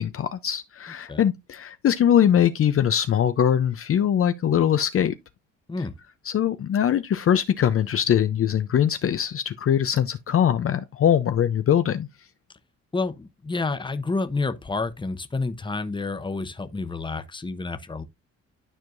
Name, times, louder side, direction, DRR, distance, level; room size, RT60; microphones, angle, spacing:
voice 1, 0.0-5.1 6.3-12.1, left 9 dB, 45° left, 0.6 m, -22 dB
voice 2, 12.9-18.0, left 3 dB, 15° left, 0.9 m, -29 dB
12.0 x 4.5 x 2.5 m
cardioid pair, 90°, 30 cm